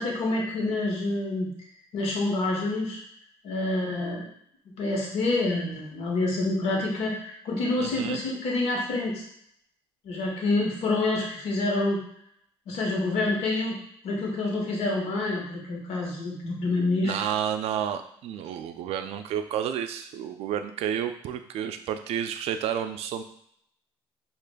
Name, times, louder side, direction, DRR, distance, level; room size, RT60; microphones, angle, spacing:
voice 1, 0.0-1.5 1.9-3.0 3.4-4.3 4.8-9.3 10.0-12.0 12.7-13.8 14.0-17.1, left 2 dB, 70° left, -1 dB, 1.1 m, -27 dB
voice 2, 7.8-8.2 17.0-23.2, right 9 dB, 70° right, 8 dB, 0.4 m, -30 dB
4.9 x 2.4 x 2.2 m, 0.71 s
cardioid pair, 90°, 11 cm